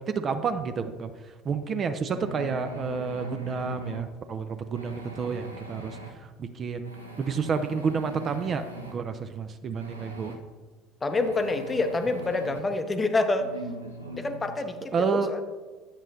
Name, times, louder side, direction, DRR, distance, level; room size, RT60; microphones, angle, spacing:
voice 1, 0.1-6.9 7.2-8.6 8.9-10.4 14.9-15.3, right 5 dB, 35° right, 9 dB, 0.4 m, -30 dB
sound 1, 2.1-4.0 4.7-6.1 6.8-9.0 9.8-10.4 11.1-12.6 13.3-14.6, right 2 dB, 85° right, 0.6 m, -41 dB
voice 2, 11.0-13.5 14.1-15.4, left 3 dB, 20° left, 8 dB, 0.6 m, -27 dB
8.4 x 7.2 x 2.6 m, 1.3 s
figure-of-eight pair, 65°, 0 cm